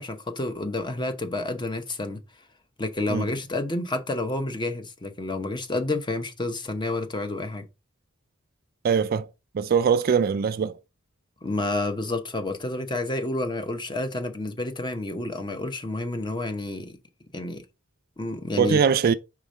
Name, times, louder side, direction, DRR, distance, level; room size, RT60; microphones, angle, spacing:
voice 1, 0.0-2.2 2.8-7.6 11.4-17.0 17.3-17.6 18.2-18.8, left 2 dB, 20° left, 0.8 m, -29 dB
voice 2, 8.8-9.3 9.5-10.8 18.6-19.1, right 6 dB, 45° right, 0.3 m, -22 dB
4.8 x 3.7 x 5.3 m
head